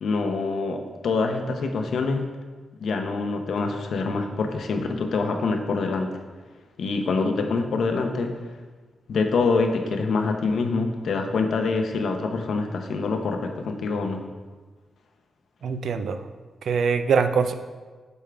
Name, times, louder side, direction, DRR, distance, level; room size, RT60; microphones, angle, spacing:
voice 1, 0.0-2.3 2.8-6.1 6.8-8.3 9.1-14.2, left 4 dB, 70° left, 4 dB, 0.7 m, -25 dB
voice 2, 15.6-16.2 16.6-17.5, right 5 dB, 70° right, 8 dB, 0.4 m, -23 dB
8.2 x 3.7 x 4.6 m, 1.4 s
wide cardioid pair, 160°, 0 cm